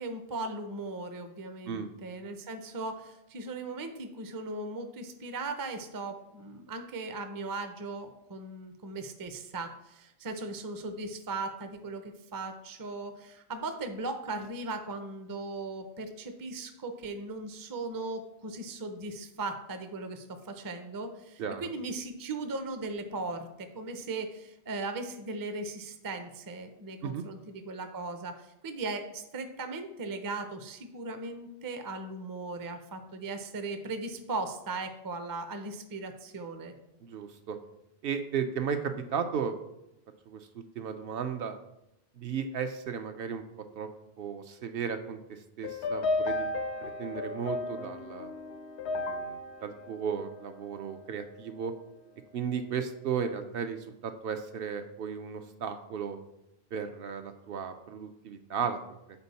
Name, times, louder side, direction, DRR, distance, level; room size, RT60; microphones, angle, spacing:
voice 1, 0.0-36.7, right 3 dB, 30° right, 7 dB, 0.4 m, -38 dB
voice 2, 37.0-37.6 38.0-39.5 40.3-41.5 42.2-43.4 43.8-43.9 44.2-46.6 47.0-48.3 48.9-51.7 52.3-56.2 56.7-58.8, right 7 dB, 65° right, 7 dB, 0.7 m, -35 dB
sound 1, 45.6-51.0, left 2 dB, 85° left, 0.9 m, -34 dB
6.8 x 4.4 x 4.1 m, 0.88 s
omnidirectional pair, 1.1 m